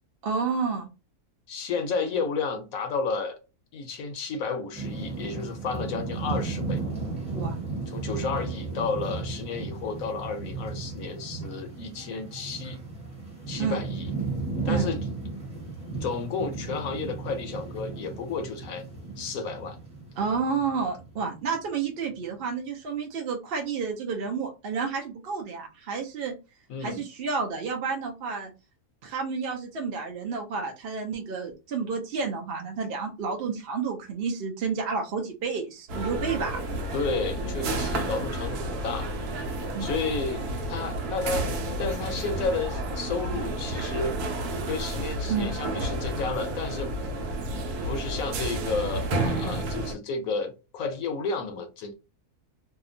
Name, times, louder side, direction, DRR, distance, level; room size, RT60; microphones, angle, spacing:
voice 1, 0.2-0.9 7.3-7.6 13.6-13.8 14.6-14.9 20.2-26.3 26.8-28.5 29.0-36.6 39.7-40.0 45.3-45.5, right 5 dB, 60° right, 0.6 m, -30 dB
voice 2, 1.5-3.4 3.7-6.8 7.9-12.8 13.5-14.1 14.6-15.0 16.0-18.8 19.2-19.8 26.7-27.0 36.9-39.1 39.8-41.5 41.8-44.2 44.7-47.2 47.8-51.9, left 4 dB, 70° left, 0.9 m, -32 dB
sound 1, 4.7-21.5, right 4 dB, 5° right, 0.9 m, -35 dB
sound 2, 35.9-49.9, right 1 dB, 85° right, 1.1 m, -31 dB
2.8 x 2.2 x 2.5 m
omnidirectional pair, 1.6 m